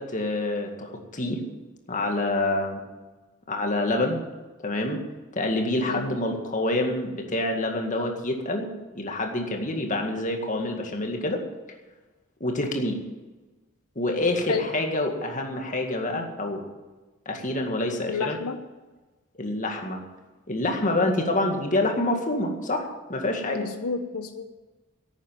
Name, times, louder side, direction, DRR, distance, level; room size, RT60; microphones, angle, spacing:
voice 1, 0.0-1.4 1.9-2.8 3.5-4.2 4.6-5.0 5.3-11.4 12.4-13.0 14.0-16.6 17.3-18.4 19.3-20.0 20.5-23.7, left 2 dB, 35° left, 3 dB, 2.0 m, -27 dB
voice 2, 18.1-18.6 23.5-24.4, left 4 dB, 85° left, 7 dB, 0.9 m, -30 dB
11.5 x 8.9 x 9.1 m, 1.2 s
head